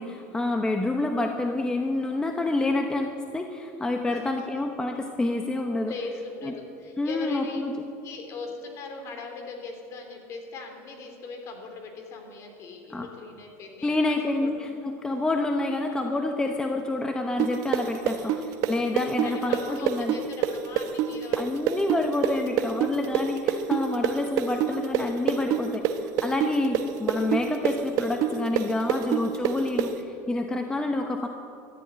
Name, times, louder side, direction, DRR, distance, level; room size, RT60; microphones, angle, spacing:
voice 1, 0.0-5.9 6.4-6.5 7.0-7.7 12.9-13.1 13.8-20.1 21.4-31.3, left 2 dB, 10° left, 4 dB, 0.9 m, -28 dB
voice 2, 4.1-4.4 5.9-7.7 8.0-14.6 18.1-18.5 19.2-21.9 30.1-30.4, left 3 dB, 45° left, 3 dB, 3.3 m, -40 dB
sound 1, 17.4-25.0 25.3-29.9, right 11 dB, 55° right, 1.1 m, -25 dB
13.5 x 11.0 x 9.5 m, 2.6 s
supercardioid pair, 130°, 7 cm